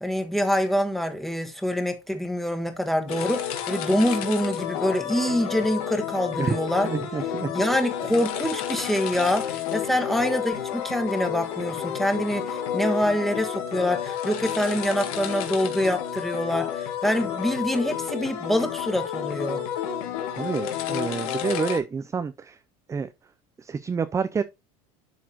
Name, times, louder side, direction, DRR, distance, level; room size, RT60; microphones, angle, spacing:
voice 1, 0.0-6.9 7.5-19.7, equal, ahead, 1.4 m, -25 dB
sound 1, 3.1-21.8, left 9 dB, 90° left, 1.7 m, -30 dB
voice 2, 6.8-7.5 20.4-22.6 22.9-23.1 23.6-24.4, right 5 dB, 15° right, 0.4 m, -28 dB
12.0 x 4.1 x 2.9 m
supercardioid pair, 120°, 18 cm